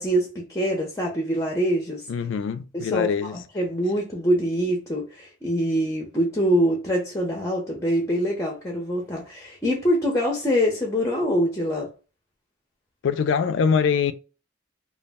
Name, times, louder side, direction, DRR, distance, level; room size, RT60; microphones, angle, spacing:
voice 1, 0.0-2.0 2.7-3.1 3.5-11.9, equal, 15° left, 0.5 m, -24 dB
voice 2, 2.1-3.4 13.0-14.1, left 6 dB, 65° left, 0.3 m, -23 dB
2.3 x 2.0 x 3.4 m
head